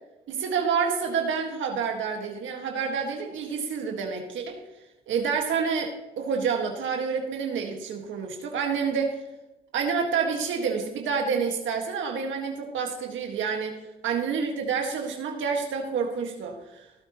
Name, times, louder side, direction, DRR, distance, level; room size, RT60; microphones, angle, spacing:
voice 1, 0.3-4.6 5.1-9.2 9.7-13.7 14.0-16.9, right 6 dB, 75° right, 3 dB, 1.7 m, -28 dB
17.0 x 9.0 x 3.0 m, 1.0 s
cardioid pair, 90°, 20 cm